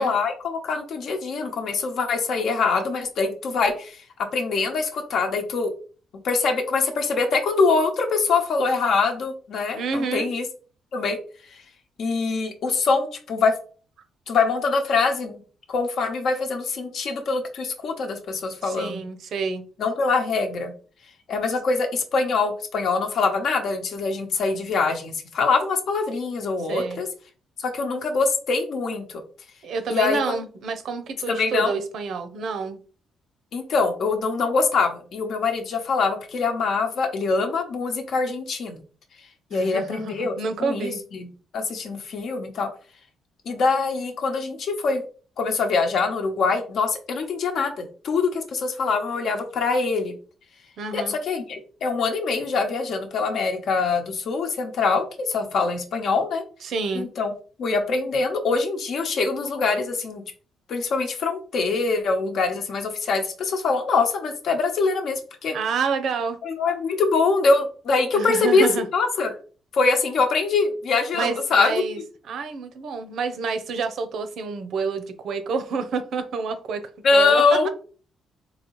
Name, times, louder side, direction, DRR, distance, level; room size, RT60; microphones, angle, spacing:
voice 1, 0.0-4.0 4.3-5.7 6.2-10.4 10.9-11.2 12.0-13.5 14.3-15.4 15.7-19.0 19.8-20.7 21.3-27.1 27.6-29.2 29.9-30.2 31.3-31.7 33.5-38.8 39.5-40.3 40.6-41.3 41.5-42.7 43.5-45.0 45.4-50.1 50.9-56.4 56.9-57.3 57.6-60.2 60.7-65.5 66.4-68.7 68.9-69.3 69.7-71.7 77.0-77.7, left 4 dB, 65° left, 5 dB, 0.9 m, -23 dB
voice 2, 9.8-10.3 18.6-19.6 26.7-27.0 29.6-32.8 39.5-41.0 50.8-51.1 56.6-57.1 65.5-66.4 68.1-68.9 71.1-72.0 72.3-76.8 77.1-77.7, right 4 dB, 70° right, 9 dB, 0.6 m, -28 dB
4.0 x 2.7 x 3.1 m, 0.39 s
cardioid pair, 90°, 0 cm